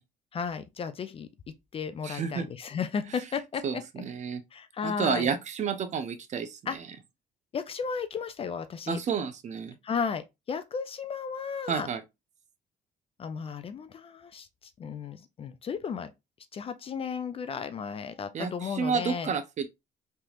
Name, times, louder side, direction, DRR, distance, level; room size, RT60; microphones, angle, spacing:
voice 1, 0.3-1.3 1.7-3.8 4.5-5.3 6.7-6.8 7.5-9.0 9.8-11.9 13.2-14.5 14.8-16.1 16.5-19.3, left 6 dB, 35° left, 0.4 m, -34 dB
voice 2, 2.0-2.5 3.6-4.4 4.8-6.9 8.9-9.8 11.7-12.0 18.3-19.7, right 6 dB, 45° right, 0.6 m, -30 dB
3.3 x 2.8 x 2.4 m
cardioid pair, 110°, 17 cm